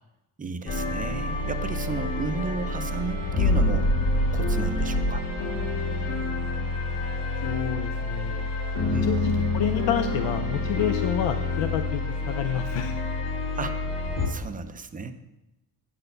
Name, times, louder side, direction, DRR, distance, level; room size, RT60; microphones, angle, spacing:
voice 1, 0.4-3.9 4.3-5.3 8.9-9.1 13.6-13.8 14.3-15.1, right 4 dB, 20° right, 9 dB, 0.5 m, -33 dB
sound 1, 0.7-14.3, left 2 dB, 70° left, 2.0 m, -27 dB
voice 2, 7.4-8.5 9.0-12.0 12.3-12.9, left 9 dB, 90° left, 8 dB, 0.6 m, -29 dB
8.8 x 4.1 x 6.6 m, 0.97 s
cardioid pair, 125°, 42 cm